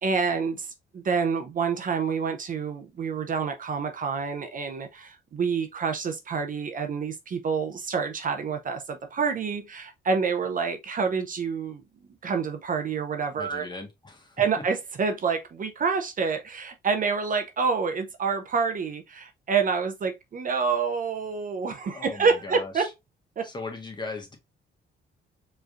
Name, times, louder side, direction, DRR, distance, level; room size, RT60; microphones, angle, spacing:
voice 1, 0.0-11.8 12.2-13.7 14.4-22.9 23.4-23.5, right 5 dB, 45° right, 0.7 m, -28 dB
voice 2, 13.4-14.6 21.8-22.9 23.4-24.4, left 3 dB, 20° left, 1.4 m, -38 dB
4.7 x 3.2 x 2.5 m
cardioid pair, 90°, 20 cm